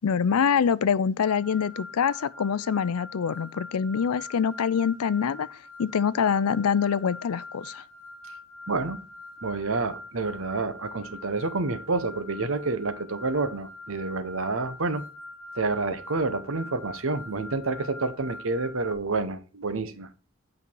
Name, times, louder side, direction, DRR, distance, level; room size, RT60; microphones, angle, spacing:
voice 1, 0.0-7.8, left 7 dB, 85° left, 0.5 m, -25 dB
sound 1, 1.2-18.9, left 2 dB, 10° left, 2.1 m, -44 dB
voice 2, 8.7-9.0 9.4-15.0 15.5-20.1, right 3 dB, 65° right, 0.9 m, -29 dB
8.5 x 5.3 x 4.5 m
head